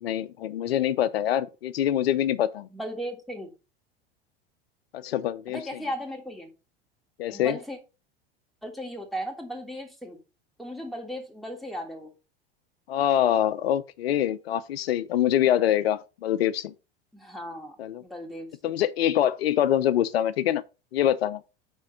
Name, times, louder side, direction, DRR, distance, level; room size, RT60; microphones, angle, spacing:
voice 1, 0.0-2.7 4.9-5.6 7.2-7.6 12.9-16.7 17.8-18.0 18.6-20.6 20.9-21.4, left 11 dB, 85° left, 0.6 m, -25 dB
voice 2, 2.7-3.5 5.5-6.5 7.3-7.8 8.6-10.2 10.6-12.1 17.1-18.7, equal, ahead, 3.0 m, -36 dB
6.4 x 4.5 x 6.2 m
hypercardioid pair, 90°, 30 cm